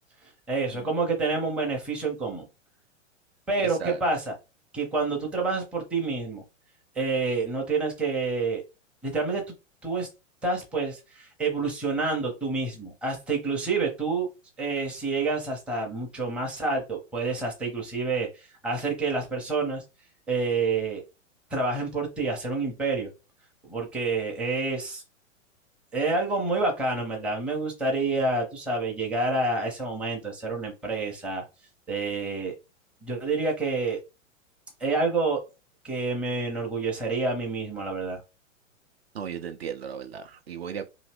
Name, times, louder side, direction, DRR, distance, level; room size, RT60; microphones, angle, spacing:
voice 1, 0.5-2.4 3.5-4.3 4.7-6.4 7.0-8.6 9.0-9.4 9.8-10.1 10.4-14.3 14.6-19.8 20.3-21.0 21.5-23.1 23.7-25.0 25.9-31.4 31.9-32.5 33.0-34.0 34.8-35.4 35.8-38.2, right 3 dB, 5° right, 0.6 m, -28 dB
voice 2, 39.1-40.9, right 7 dB, 55° right, 0.5 m, -36 dB
2.8 x 2.5 x 3.2 m
figure-of-eight pair, 105°, 39 cm